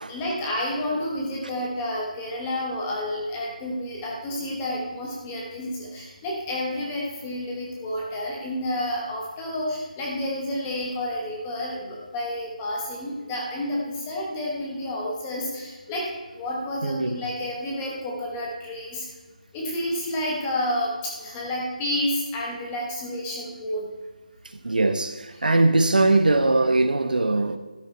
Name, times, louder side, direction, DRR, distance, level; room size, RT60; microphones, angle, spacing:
voice 1, 0.1-19.0 19.5-23.9, left 1 dB, 5° left, 0.9 m, -30 dB
voice 2, 16.8-17.2 24.6-27.6, right 2 dB, 85° right, 1.1 m, -21 dB
12.0 x 9.9 x 4.4 m
figure-of-eight pair, 180°, 5 cm